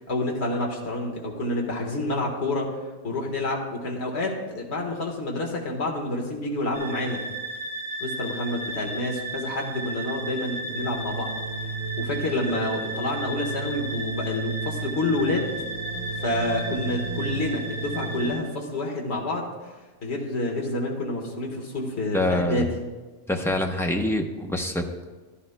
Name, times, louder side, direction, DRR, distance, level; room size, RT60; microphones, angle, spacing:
voice 1, 0.1-2.7 3.0-7.2 8.0-11.3 12.0-15.5 16.2-19.7 20.0-22.7, left 2 dB, 65° left, 0 dB, 1.7 m, -28 dB
sound 1, 6.7-18.3, right 3 dB, 15° right, 2.8 m, -33 dB
voice 2, 22.1-22.6 23.3-25.0, left 1 dB, 5° left, 2 dB, 0.6 m, -25 dB
15.0 x 11.0 x 2.2 m, 1.3 s
omnidirectional pair, 1.2 m